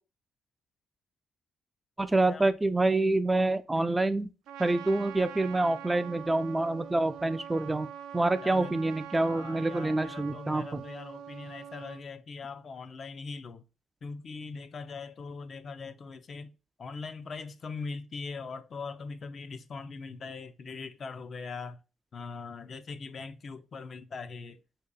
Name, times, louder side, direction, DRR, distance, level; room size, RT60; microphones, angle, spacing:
voice 1, 2.0-4.3 4.6-7.9 8.1-10.8, right 2 dB, 15° right, 0.3 m, -27 dB
Trumpet, 4.5-12.0, right 9 dB, 90° right, 0.4 m, -44 dB
voice 2, 8.4-8.8 9.3-13.6 14.0-16.5 16.8-21.8 22.1-24.6, left 4 dB, 50° left, 0.4 m, -41 dB
2.9 x 2.8 x 3.7 m
cardioid pair, 90°, 0 cm